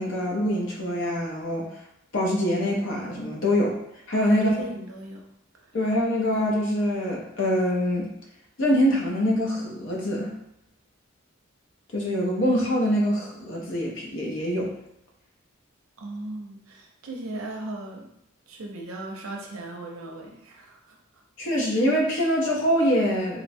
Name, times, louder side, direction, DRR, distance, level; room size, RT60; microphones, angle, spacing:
voice 1, 0.0-1.7 2.1-3.8 4.1-4.5 5.7-8.1 8.6-10.3 11.9-14.7 21.4-23.4, equal, 65° left, -1 dB, 0.6 m, -24 dB
voice 2, 4.1-5.2 5.5-5.8 16.0-18.1 18.5-21.0, right 2 dB, 80° right, 1 dB, 0.5 m, -37 dB
2.8 x 2.1 x 2.6 m, 0.78 s
head